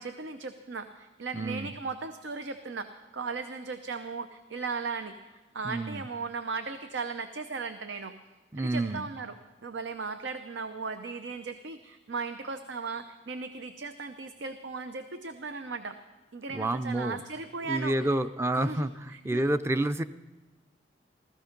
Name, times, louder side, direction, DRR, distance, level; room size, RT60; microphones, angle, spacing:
voice 1, 0.0-8.1 8.5-9.3 9.6-16.0 16.3-18.2 18.5-19.4, right 4 dB, 85° right, 9 dB, 0.7 m, -37 dB
voice 2, 1.3-1.7 5.6-6.0 8.5-9.1 16.5-17.2 17.7-20.0, right 1 dB, 15° right, 12 dB, 0.4 m, -29 dB
15.5 x 14.0 x 5.2 m, 1.2 s
head